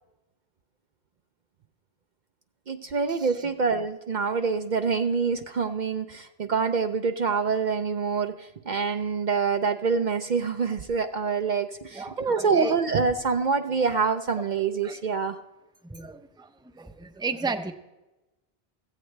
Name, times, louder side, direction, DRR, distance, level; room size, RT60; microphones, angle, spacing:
voice 1, 2.7-15.4, right 5 dB, 55° right, 8 dB, 0.7 m, -26 dB
voice 2, 11.9-12.8 14.8-15.0 15.9-16.5 16.7-17.7, right 4 dB, 5° right, 7 dB, 0.6 m, -33 dB
15.5 x 15.5 x 3.3 m, 1.0 s
omnidirectional pair, 1.0 m